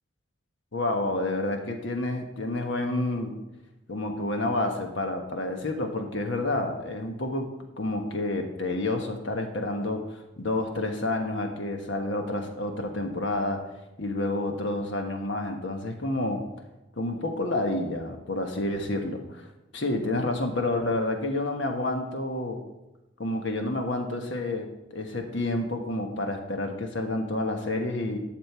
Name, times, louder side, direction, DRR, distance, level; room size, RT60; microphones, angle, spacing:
voice 1, 0.7-3.4 3.9-7.5 7.8-10.0 10.4-13.6 14.0-16.4 17.0-19.5 19.7-22.6 23.2-28.2, left 2 dB, 65° left, 4 dB, 1.3 m, -29 dB
11.5 x 6.7 x 4.4 m, 0.98 s
head